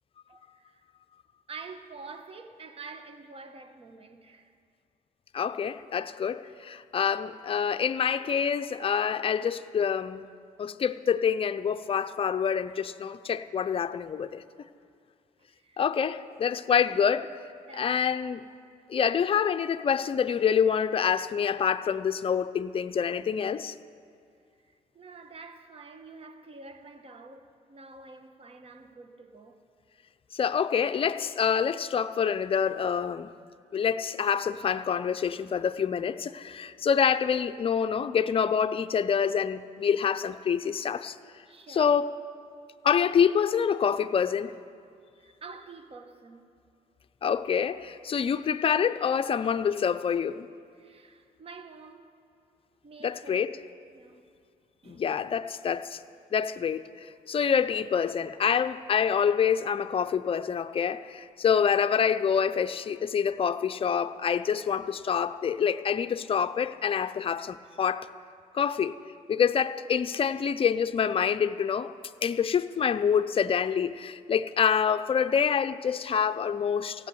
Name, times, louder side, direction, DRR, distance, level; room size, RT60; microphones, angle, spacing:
voice 1, 0.3-0.8 1.5-4.5 15.5-17.4 17.7-18.0 24.7-29.6 41.5-42.0 45.2-46.5 50.8-52.1 52.8-53.6 53.9-54.3 54.8-55.1, right 4 dB, 40° right, 1.1 m, -48 dB
voice 2, 5.3-10.3 10.6-14.4 15.8-17.3 17.7-18.4 18.9-23.7 30.3-33.3 33.7-41.2 41.7-42.2 42.8-44.6 47.2-50.5 53.0-53.6 54.9-56.0 56.3-68.1 68.5-68.9 69.3-71.9 72.2-77.1, left 7 dB, 40° left, 0.5 m, -26 dB
16.0 x 8.4 x 9.5 m
cardioid pair, 95°, 15 cm